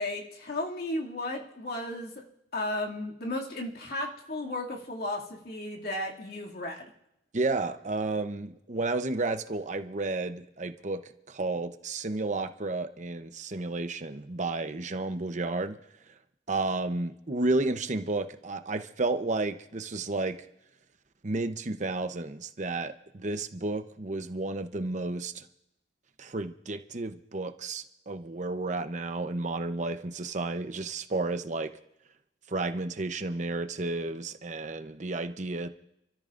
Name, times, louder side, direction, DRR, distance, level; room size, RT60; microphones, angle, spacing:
voice 1, 0.0-2.2 2.5-6.9, left 1 dB, 60° left, -1 dB, 2.4 m, -34 dB
voice 2, 7.3-11.0 11.3-15.8 16.5-20.4 21.2-25.4 26.2-31.7 32.5-35.7, right 2 dB, 45° right, 9 dB, 0.8 m, -32 dB
28.5 x 14.0 x 2.6 m, 0.85 s
head